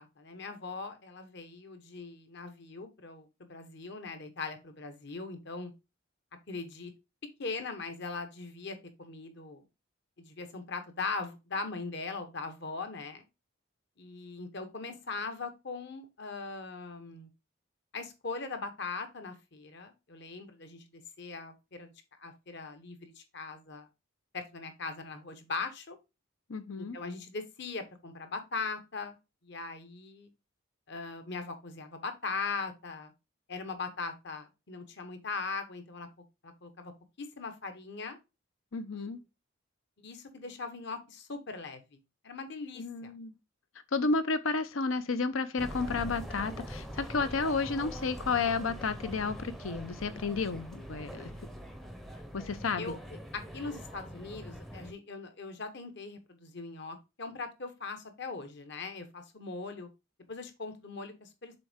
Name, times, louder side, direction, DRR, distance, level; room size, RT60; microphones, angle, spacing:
voice 1, 0.0-5.7 6.5-6.9 7.4-9.6 10.2-13.2 14.0-17.3 17.9-21.9 22.2-23.9 24.3-26.0 26.8-29.2 29.4-30.3 30.9-33.1 33.5-36.1 36.4-36.9 37.2-38.2 38.9-39.1 40.0-42.0 42.2-43.1 52.8-53.0 53.3-59.9 60.3-61.5, left 4 dB, 55° left, 1.2 m, -40 dB
voice 2, 26.5-27.0 38.7-39.2 42.8-43.3 43.9-51.3 52.3-53.0, left 4 dB, 75° left, 0.7 m, -32 dB
sound 1, 45.6-54.9, equal, ahead, 0.6 m, -43 dB
6.8 x 4.4 x 3.5 m
head